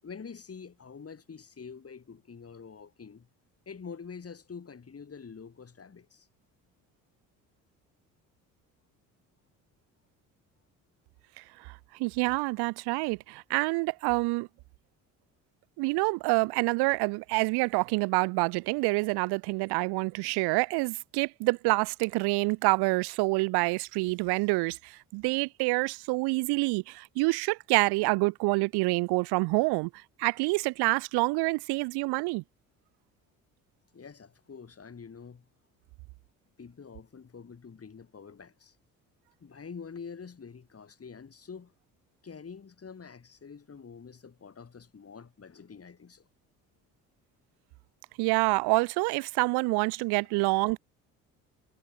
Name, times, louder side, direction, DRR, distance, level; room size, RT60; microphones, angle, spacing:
voice 1, 0.0-3.3 3.7-6.3 33.9-35.4 36.6-38.8 39.4-41.7 42.2-46.3, left 6 dB, 35° left, 6.4 m, -46 dB
voice 2, 11.4-14.5 15.8-29.9 30.2-32.4 48.2-50.8, right 26 dB, 70° right, 0.7 m, -27 dB
hypercardioid pair, 60°, 41 cm